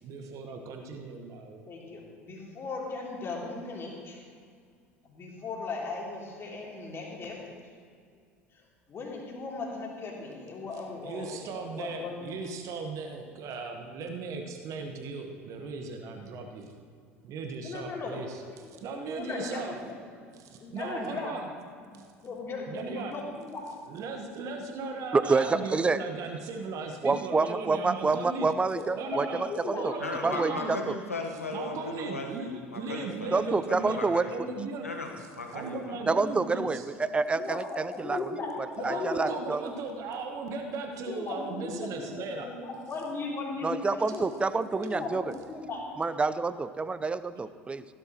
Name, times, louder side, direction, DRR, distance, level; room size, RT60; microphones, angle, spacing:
voice 1, 0.0-1.7 11.0-16.8 17.2-19.7 20.4-21.5 21.9-22.1 22.7-23.2 23.9-28.5 28.9-29.4 29.7-30.7 31.5-34.0 34.3-34.9 35.5-36.8 38.8-42.5, right 3 dB, 45° right, 4 dB, 1.4 m, -37 dB
voice 2, 1.7-4.2 5.0-7.4 8.9-12.4 17.6-18.1 18.7-18.8 19.1-19.9 20.6-21.4 21.8-21.9 22.2-23.6 28.7-29.9 34.4-34.5 37.3-38.5 38.8-39.3 41.0-44.3 44.7-45.9, left 4 dB, 30° left, -3 dB, 3.3 m, -37 dB
voice 3, 25.1-26.0 27.0-29.9 30.2-30.9 33.3-34.3 36.1-38.3 38.6-39.6 43.6-45.3 46.0-47.8, right 4 dB, 15° right, 14 dB, 0.5 m, -28 dB
voice 4, 30.0-33.3 33.7-34.3 34.8-36.0, left 2 dB, 85° left, 2 dB, 1.3 m, -37 dB
15.5 x 12.0 x 3.1 m, 2.2 s
figure-of-eight pair, 70°, 8 cm